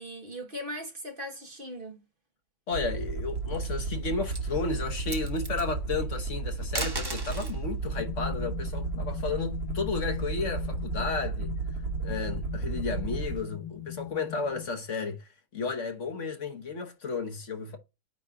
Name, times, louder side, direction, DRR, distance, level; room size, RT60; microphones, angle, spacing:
voice 1, 0.0-2.0, equal, 35° right, 1.7 m, -39 dB
voice 2, 2.7-11.5 12.0-17.8, left 4 dB, 55° left, 1.4 m, -33 dB
Aircraft, 2.7-13.4, right 4 dB, 75° right, 2.0 m, -33 dB
sound 1, 3.4-3.9 4.2-4.5 4.9-5.6 6.6-7.6 9.1-10.3, right 2 dB, 20° right, 0.8 m, -37 dB
sound 2, 7.9-14.7, left 12 dB, 75° left, 1.9 m, -41 dB
9.3 x 3.1 x 3.7 m
omnidirectional pair, 1.6 m